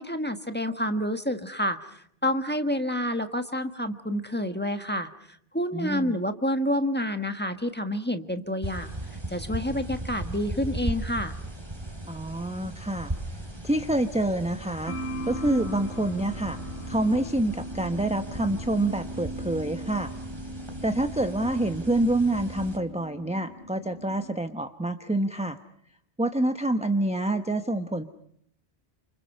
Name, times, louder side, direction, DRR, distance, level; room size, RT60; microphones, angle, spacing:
voice 1, 0.0-5.1 5.5-9.0 9.3-11.3, equal, 10° left, 8 dB, 1.4 m, -28 dB
voice 2, 5.7-6.2 12.0-13.1 13.6-15.0 15.3-16.6 16.9-20.1 20.8-25.6 26.2-28.0, right 1 dB, 5° right, 8 dB, 0.9 m, -27 dB
sound 1, 8.6-22.8, right 1 dB, 25° right, 3.3 m, -38 dB
sound 2, 14.9-24.4, equal, 75° left, 4.0 m, -39 dB
30.0 x 27.0 x 5.5 m, 0.68 s
omnidirectional pair, 1.1 m